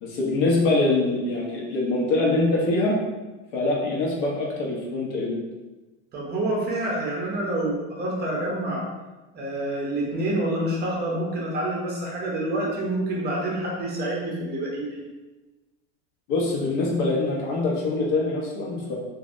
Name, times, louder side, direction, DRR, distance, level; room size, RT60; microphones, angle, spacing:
voice 1, 0.0-3.0 3.5-5.4 16.3-19.0, left 2 dB, 70° left, -3 dB, 1.0 m, -24 dB
voice 2, 6.1-8.9 9.3-15.0, right 1 dB, 30° right, -3 dB, 0.7 m, -27 dB
3.1 x 2.6 x 2.5 m, 1.1 s
supercardioid pair, 130°, 36 cm